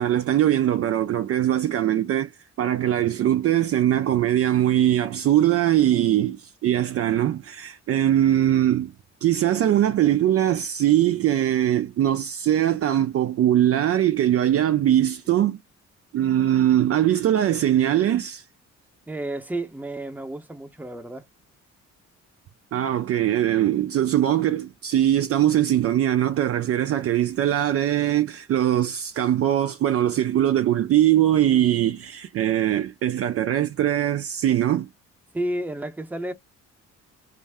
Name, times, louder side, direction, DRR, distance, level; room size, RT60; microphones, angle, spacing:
voice 1, 0.0-2.3 2.6-8.9 9.2-15.6 16.1-18.4 22.7-34.9, right 12 dB, 50° right, 0.4 m, -21 dB
voice 2, 19.1-21.2 27.0-27.1 35.3-36.3, right 1 dB, 5° right, 0.7 m, -31 dB
2.5 x 2.1 x 3.3 m
cardioid pair, 90°, 30 cm